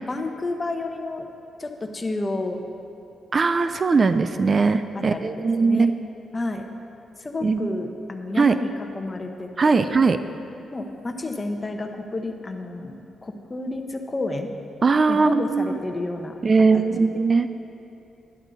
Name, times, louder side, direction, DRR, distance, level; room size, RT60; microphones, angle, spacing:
voice 1, 0.1-1.3 1.6-2.6 5.1-5.9 6.3-6.6 7.2-9.9 10.7-12.9 13.2-14.5 15.1-16.4 16.7-16.8, left 2 dB, 25° left, 5 dB, 1.0 m, -30 dB
voice 2, 3.3-5.9 7.4-7.8 8.4-8.5 9.6-10.2 14.8-15.8 16.4-17.5, right 4 dB, 40° right, 11 dB, 0.4 m, -20 dB
11.5 x 10.5 x 4.1 m, 2.8 s
cardioid pair, 80°, 0 cm